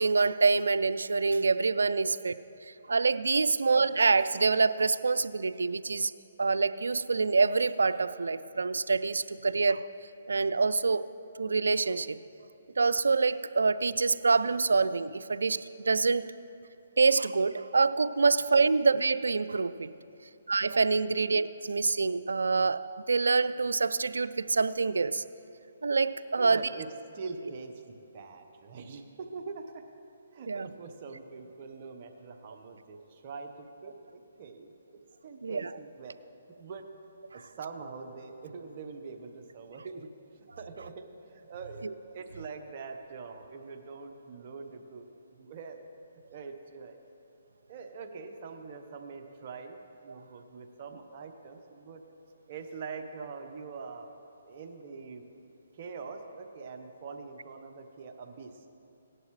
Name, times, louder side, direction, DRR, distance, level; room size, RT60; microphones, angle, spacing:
voice 1, 0.0-2.3 2.9-6.1 6.4-9.9 10.3-11.1 11.4-12.2 12.8-16.3 17.0-19.9 20.5-25.2 25.8-26.6 30.5-30.7 35.4-35.6, right 4 dB, 85° right, 14 dB, 0.4 m, -26 dB
voice 2, 26.4-26.9 27.1-29.9 30.3-34.7 35.2-36.1 36.5-36.8 37.3-45.0 45.3-45.8 46.3-47.0 47.7-52.0 52.5-54.1 54.4-55.3 55.7-58.7, right 4 dB, 40° right, 4 dB, 1.1 m, -44 dB
17.5 x 11.0 x 3.2 m, 2.7 s
hypercardioid pair, 150°, 0 cm